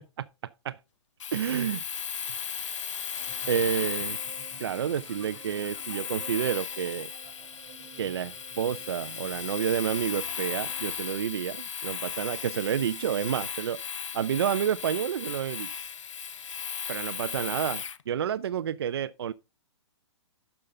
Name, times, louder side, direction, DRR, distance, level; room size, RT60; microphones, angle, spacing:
Domestic sounds home sounds, 1.2-18.0, left 7 dB, 85° left, 0.8 m, -36 dB
voice 1, 1.3-1.8 3.5-4.2 4.6-7.1 8.0-13.8 14.1-15.7 16.9-19.3, right 9 dB, 55° right, 0.5 m, -29 dB
sound 1, 3.2-11.0, right 7 dB, 30° right, 2.7 m, -52 dB
12.0 x 5.6 x 3.7 m
hypercardioid pair, 175°, 15 cm